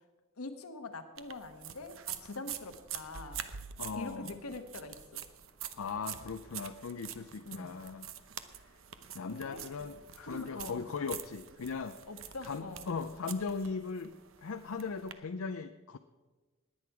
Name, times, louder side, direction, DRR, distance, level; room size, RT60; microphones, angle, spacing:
voice 1, 0.4-3.4 3.9-5.2 7.4-7.8 9.2-9.6 10.2-10.9 12.1-12.9, left 2 dB, 90° left, 7 dB, 1.3 m, -44 dB
sound 1, 1.2-15.1, right 9 dB, 65° right, 0.8 m, -46 dB
voice 2, 3.8-4.4 5.8-8.1 8.6-8.7 9.1-12.0 12.4-16.0, left 5 dB, 75° left, 8 dB, 0.5 m, -38 dB
20.0 x 8.6 x 4.8 m, 1.3 s
head